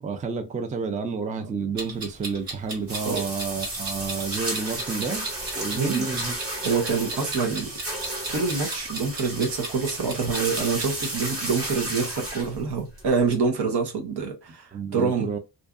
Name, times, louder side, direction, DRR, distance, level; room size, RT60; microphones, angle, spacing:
voice 1, 0.0-5.3 5.5-6.4 14.7-15.4, right 5 dB, 20° right, 0.3 m, -30 dB
Clock, 1.8-11.1, right 2 dB, 60° right, 1.2 m, -36 dB
sound 1, 2.9-13.3, right 1 dB, 35° right, 1.1 m, -33 dB
voice 2, 5.7-6.1 6.6-7.7 8.3-15.3, right 5 dB, 80° right, 0.9 m, -26 dB
2.7 x 2.4 x 2.3 m
wide cardioid pair, 165°, 39 cm